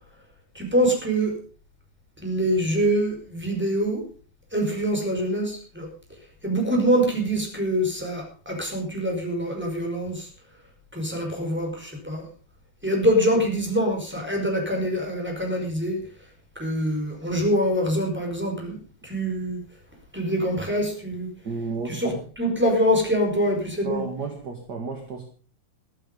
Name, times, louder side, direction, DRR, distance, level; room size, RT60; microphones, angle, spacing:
voice 1, 0.5-1.4 2.2-4.0 4.5-5.9 6.4-10.3 10.9-12.3 12.8-16.1 16.5-19.6 20.1-21.3 21.9-24.1, equal, 5° right, 2 dB, 4.9 m, -25 dB
voice 2, 21.4-22.2 23.8-25.2, right 4 dB, 35° right, 4 dB, 1.8 m, -32 dB
14.0 x 14.0 x 5.4 m, 0.38 s
omnidirectional pair, 4.4 m